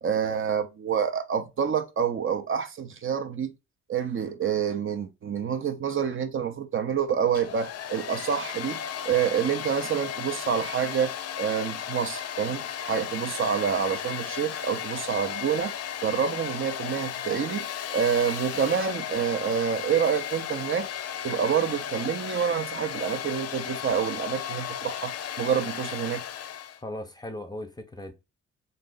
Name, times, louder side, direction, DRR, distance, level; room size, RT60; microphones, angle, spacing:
voice 1, 0.0-3.5 3.9-15.7 16.0-17.7 17.9-20.9 21.2-26.2, right 7 dB, 45° right, 0.7 m, -27 dB
Domestic sounds home sounds, 7.2-26.8, left 9 dB, 55° left, 0.5 m, -35 dB
voice 2, 26.8-28.1, left 1 dB, 15° left, 0.7 m, -37 dB
3.3 x 2.7 x 3.8 m
cardioid pair, 95°, 29 cm